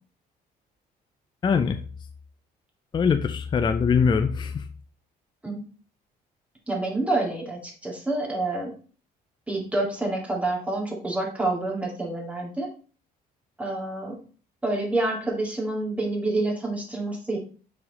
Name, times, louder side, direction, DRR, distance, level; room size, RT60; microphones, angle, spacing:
voice 1, 1.4-1.8 2.9-4.6, left 6 dB, 25° left, 8 dB, 0.4 m, -22 dB
voice 2, 6.7-8.7 9.5-12.7 13.6-14.2 14.6-17.4, right 2 dB, 10° right, -1 dB, 2.0 m, -28 dB
5.7 x 4.1 x 4.0 m, 0.39 s
cardioid pair, 110°, 17 cm